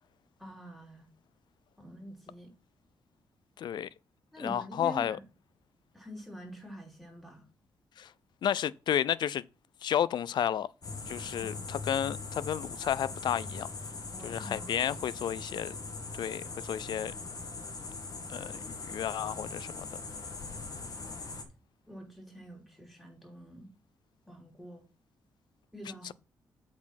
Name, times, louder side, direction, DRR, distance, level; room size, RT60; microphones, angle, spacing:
voice 1, 0.4-1.0 1.8-2.5 4.3-5.2 5.9-7.4 11.2-11.7 14.1-14.9 21.9-23.7 24.3-24.8 25.7-26.1, equal, ahead, 3.3 m, -46 dB
voice 2, 3.6-3.9 4.4-5.2 8.0-8.1 8.4-9.4 9.8-10.7 11.1-13.7 14.2-15.8 16.2-17.1 18.3-19.9 26.0-26.1, left 9 dB, 70° left, 0.4 m, -32 dB
sound 1, 10.8-21.4, left 3 dB, 50° left, 1.9 m, -41 dB
8.0 x 4.4 x 5.8 m
cardioid pair, 65°, 8 cm